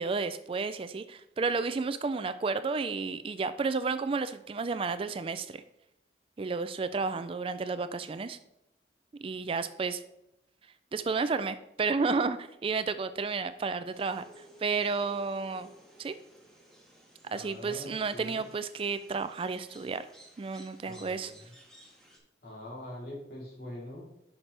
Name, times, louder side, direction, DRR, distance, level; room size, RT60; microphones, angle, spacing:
voice 1, 0.0-5.6 6.4-8.4 9.2-10.0 10.9-15.7 16.0-16.1 17.3-20.1 20.4-21.3, right 4 dB, 30° right, 12 dB, 0.3 m, -32 dB
sound 1, 13.9-22.2, right 1 dB, 5° left, 1.5 m, -56 dB
voice 2, 17.3-18.4 20.8-21.4 22.4-24.1, left 1 dB, 55° left, -4 dB, 3.4 m, -43 dB
10.5 x 5.9 x 3.3 m, 0.83 s
head